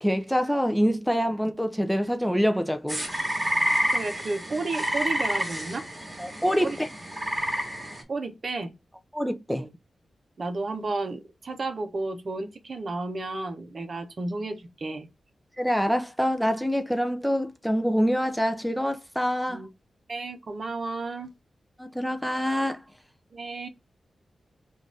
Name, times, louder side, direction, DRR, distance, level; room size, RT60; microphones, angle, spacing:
voice 1, 0.0-3.0 6.2-6.9 9.1-9.7 15.6-19.6 21.8-22.8, equal, ahead, 0.5 m, -25 dB
sound 1, 2.9-8.0, equal, 15° right, 1.8 m, -29 dB
voice 2, 3.9-5.9 6.6-6.8 8.1-8.7 9.5-9.7 10.4-15.1 19.5-19.7 20.1-21.3 23.3-23.7, right 3 dB, 50° right, 0.9 m, -32 dB
3.9 x 2.6 x 4.7 m
wide cardioid pair, 90°, 0 cm